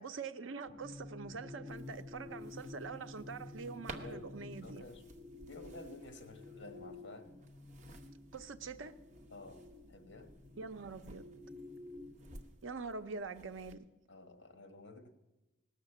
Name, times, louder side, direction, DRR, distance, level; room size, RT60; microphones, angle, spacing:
voice 1, 0.0-4.8 8.3-8.9 10.6-11.2 12.6-13.8, right 4 dB, 85° right, 0.7 m, -44 dB
sound 1, 0.7-12.4, left 2 dB, 20° right, 2.1 m, -51 dB
sound 2, 1.7-13.8, right 2 dB, 35° right, 1.0 m, -56 dB
voice 2, 4.0-5.1 5.5-7.4 9.3-10.3 14.1-15.2, left 2 dB, 65° left, 1.4 m, -52 dB
17.5 x 6.6 x 7.9 m
head